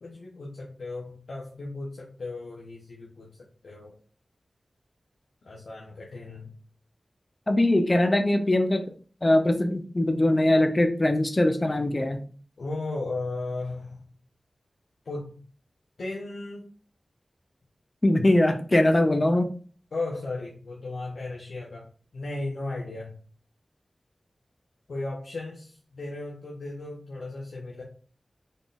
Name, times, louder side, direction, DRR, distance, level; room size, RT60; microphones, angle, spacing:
voice 1, 0.0-3.4 3.6-4.0 5.4-6.5 12.6-14.2 15.0-15.4 16.0-16.7 19.9-21.9 22.1-23.2 24.9-27.8, left 2 dB, 90° left, -4 dB, 0.7 m, -35 dB
voice 2, 7.5-8.8 9.2-12.2 18.0-19.5, left 1 dB, 35° left, 7 dB, 0.5 m, -22 dB
3.9 x 3.6 x 2.4 m, 0.41 s
cardioid pair, 45°, 0 cm